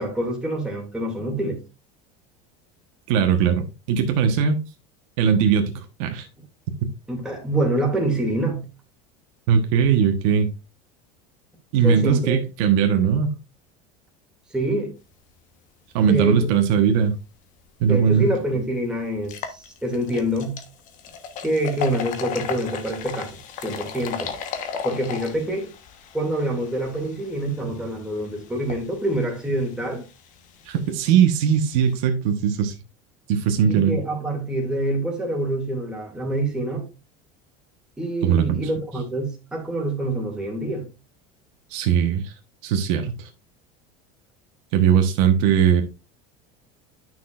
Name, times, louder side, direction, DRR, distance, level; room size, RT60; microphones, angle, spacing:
voice 1, 0.0-1.6 7.1-8.6 11.8-12.4 14.5-14.9 16.0-16.5 17.8-20.6 21.4-24.3 24.8-25.7 26.1-30.0 33.7-36.9 38.0-40.8, right 1 dB, 5° right, 2.4 m, -26 dB
voice 2, 3.1-4.6 5.2-6.3 9.5-10.5 11.7-13.3 15.9-17.1 17.8-18.3 30.7-32.7 33.3-34.0 38.2-38.6 41.7-42.3 42.6-43.3 44.7-45.8, right 7 dB, 65° right, 1.2 m, -19 dB
sound 1, 17.9-18.0 18.4-18.5 19.2-31.9, left 7 dB, 45° left, 1.2 m, -36 dB
9.3 x 6.1 x 2.5 m
supercardioid pair, 140°, 18 cm